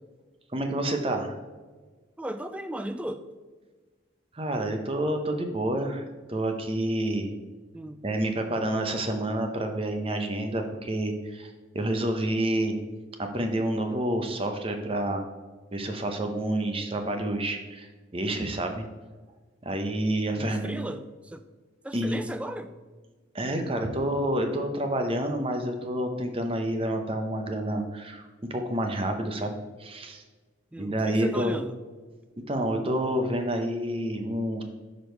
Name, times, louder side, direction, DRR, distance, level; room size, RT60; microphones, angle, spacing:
voice 1, 0.5-1.4 4.3-7.3 8.0-12.8 13.2-15.2 15.7-18.9 19.6-20.7 21.9-22.2 23.3-28.2 28.5-30.2 30.8-31.5 32.5-34.6, right 1 dB, 30° right, 5 dB, 0.8 m, -28 dB
voice 2, 2.2-3.3 7.7-8.0 20.3-21.5 21.8-22.7 30.7-31.8, right 1 dB, 5° right, 9 dB, 0.3 m, -36 dB
6.2 x 5.2 x 4.5 m, 1.3 s
head